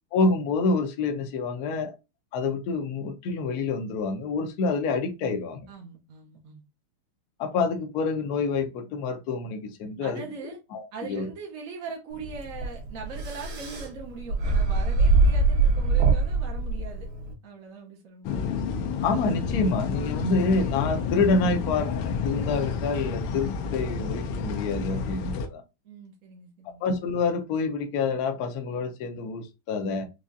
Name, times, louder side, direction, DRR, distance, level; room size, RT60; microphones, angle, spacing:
voice 1, 0.1-1.9 2.3-5.7 7.4-10.2 10.7-11.3 19.0-21.9 22.2-25.6 26.8-30.1, left 4 dB, 70° left, 0.9 m, -27 dB
voice 2, 5.7-6.6 10.0-10.6 10.9-17.1 17.4-18.4 19.9-20.3 25.8-26.9, right 4 dB, 60° right, 0.8 m, -41 dB
sound 1, 12.2-17.3, right 3 dB, 85° right, 2.1 m, -23 dB
sound 2, 18.2-25.5, left 5 dB, 85° left, 1.5 m, -30 dB
4.8 x 2.3 x 2.6 m
omnidirectional pair, 2.4 m